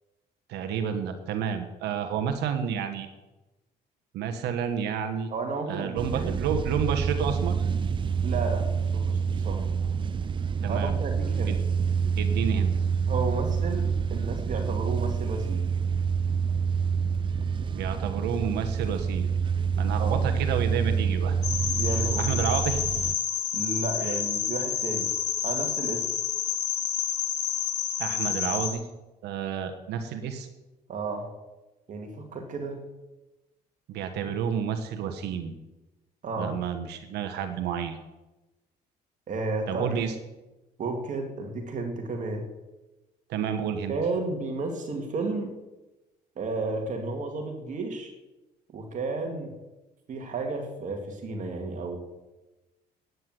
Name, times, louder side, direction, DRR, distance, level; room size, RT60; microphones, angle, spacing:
voice 1, 0.5-3.1 4.1-5.3 5.7-7.5 10.6-10.9 11.5-11.6 12.2-12.7 17.7-19.3 19.8-21.4 21.9-22.8 24.0-24.2 28.0-28.9 29.2-30.5 33.9-35.5 36.4-38.0 39.7-40.1 43.3-43.9, right 7 dB, 80° right, 7 dB, 1.3 m, -30 dB
voice 2, 5.3-6.4 8.2-9.7 10.7-11.6 13.1-15.7 20.0-20.2 21.8-22.3 23.5-25.1 25.4-26.1 30.9-31.3 31.9-32.8 36.2-36.5 39.3-40.0 40.8-42.4 43.9-45.5 46.4-48.1 48.7-49.5 50.1-52.0, right 3 dB, 50° right, 3 dB, 2.2 m, -32 dB
sound 1, 6.0-23.1, right 6 dB, 30° right, 0.4 m, -27 dB
sound 2, 21.4-28.7, left 9 dB, 85° left, 2.9 m, -29 dB
10.0 x 9.5 x 7.7 m, 1.0 s
cardioid pair, 110°, 17 cm